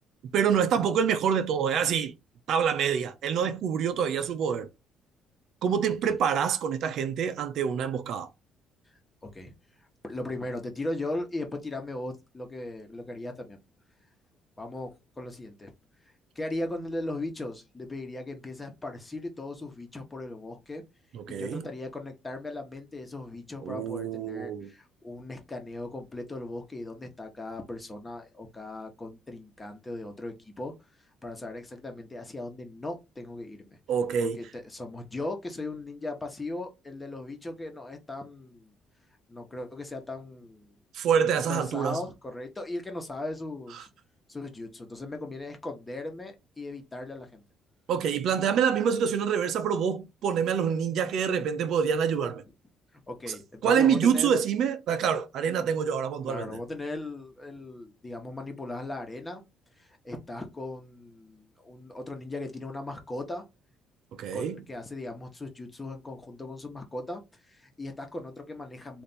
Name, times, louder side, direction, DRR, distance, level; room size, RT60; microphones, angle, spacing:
voice 1, 0.3-2.1 2.5-4.7 5.6-8.3 21.1-21.6 23.6-24.7 33.9-34.4 40.9-42.0 47.9-52.4 53.6-56.6 64.2-64.6, right 7 dB, 70° right, 0.6 m, -26 dB
voice 2, 9.2-9.5 10.0-13.6 14.6-15.7 16.3-20.8 21.3-30.7 31.2-33.8 34.2-38.7 39.3-40.7 41.4-43.9 44.3-47.4 53.1-54.3 56.2-59.4 59.8-63.4 64.3-67.2 67.5-69.0, left 2 dB, 20° left, 1.1 m, -38 dB
3.3 x 2.6 x 4.1 m
cardioid pair, 100°, 0 cm